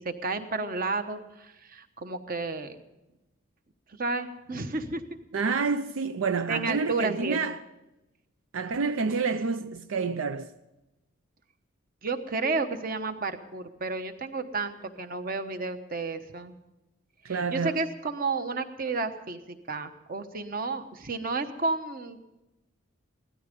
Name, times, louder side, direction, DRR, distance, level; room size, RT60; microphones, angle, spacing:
voice 1, 0.0-2.8 3.9-5.0 6.5-7.4 12.0-16.6 17.3-22.2, right 3 dB, 45° right, 1.1 m, -32 dB
voice 2, 5.3-7.6 8.5-10.5 17.2-17.8, right 4 dB, 75° right, 0.5 m, -28 dB
17.0 x 13.5 x 5.3 m
head